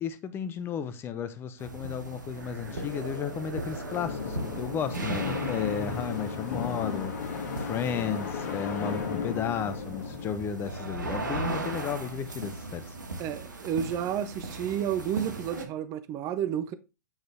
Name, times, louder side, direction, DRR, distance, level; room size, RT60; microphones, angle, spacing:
voice 1, 0.0-7.2 7.5-12.9, left 8 dB, 25° left, 0.8 m, -33 dB
sound 1, 1.6-15.6, right 2 dB, 75° right, 1.4 m, -38 dB
sound 2, 2.6-11.5, left 6 dB, 55° left, 1.6 m, -36 dB
voice 2, 13.2-16.7, right 9 dB, 30° right, 0.6 m, -31 dB
8.8 x 3.9 x 3.5 m
figure-of-eight pair, 105°, 10 cm